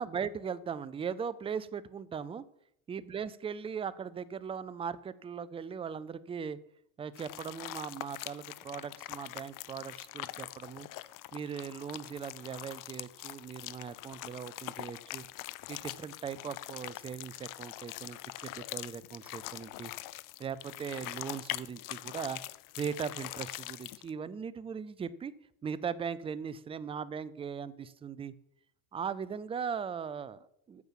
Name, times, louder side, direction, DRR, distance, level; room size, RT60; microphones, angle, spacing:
voice 1, 0.0-2.4 2.9-6.6 7.0-10.9 11.3-15.2 15.7-19.9 20.4-22.4 22.8-25.3 25.6-28.3 28.9-30.8, right 7 dB, 15° right, 17 dB, 0.3 m, -39 dB
sound 1, 7.1-24.1, left 17 dB, 40° left, 0.6 m, -43 dB
9.5 x 7.3 x 7.3 m, 0.75 s
supercardioid pair, 95°, 49 cm